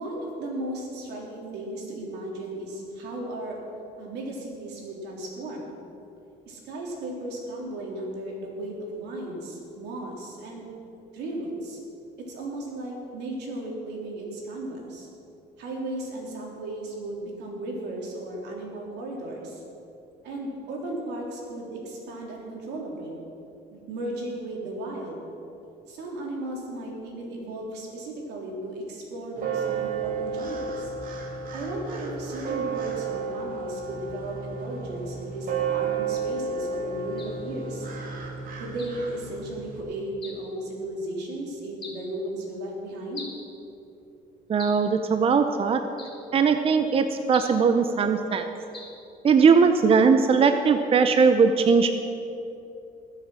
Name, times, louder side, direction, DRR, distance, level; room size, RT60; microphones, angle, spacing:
voice 1, 0.0-3.6 4.0-5.7 6.5-10.7 11.1-11.8 12.2-15.1 15.6-19.6 20.2-23.2 23.7-25.2 25.9-30.9 31.5-37.9 38.6-43.3, right 1 dB, 80° right, -1 dB, 3.6 m, -35 dB
sound 1, 29.4-39.8, right 5 dB, 55° right, 2.5 m, -32 dB
sound 2, 37.2-37.4 38.8-39.0 40.2-40.5 41.8-42.1 43.1-43.5 44.6-44.9 46.0-46.3 47.3-47.6 48.7-49.0, left 3 dB, 30° left, 3.2 m, -42 dB
voice 2, 44.5-45.8 46.3-48.5 49.2-51.9, right 5 dB, 35° right, 8 dB, 0.7 m, -20 dB
21.0 x 7.4 x 6.3 m, 2.8 s
cardioid pair, 110°, 17 cm